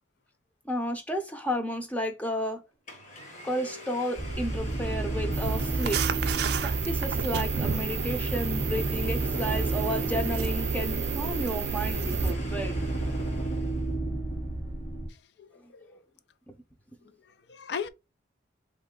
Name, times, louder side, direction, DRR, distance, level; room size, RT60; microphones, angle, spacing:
voice 1, 0.6-2.6 3.4-6.0 6.6-12.8 15.6-15.7, equal, 10° left, 0.6 m, -32 dB
Domestic sounds home sounds, 2.4-2.5 2.9-13.9, right 1 dB, 40° left, 1.2 m, -43 dB
sound 1, 4.2-15.1, right 2 dB, 80° left, 1.9 m, -32 dB
sound 2, 5.3-12.3, right 6 dB, 55° right, 0.4 m, -31 dB
voice 2, 15.4-16.0 17.3-17.9, left 6 dB, 60° left, 0.4 m, -38 dB
3.6 x 3.2 x 3.7 m
head